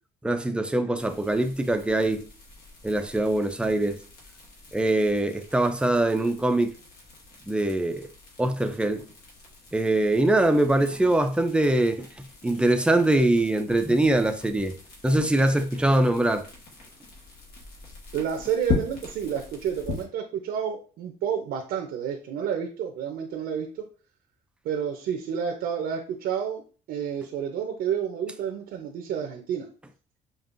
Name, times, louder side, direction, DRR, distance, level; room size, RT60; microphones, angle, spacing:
voice 1, 0.2-2.2 2.8-4.0 4.7-6.7 7.5-8.1 8.4-9.0 9.7-14.7 15.0-16.4, right 1 dB, 5° right, 0.4 m, -23 dB
sound 1, 1.0-20.0, left 5 dB, 65° left, 1.4 m, -40 dB
voice 2, 18.1-23.7 24.6-26.6 26.9-29.7, right 8 dB, 75° right, 0.7 m, -30 dB
5.3 x 2.4 x 2.6 m
cardioid pair, 110°, 17 cm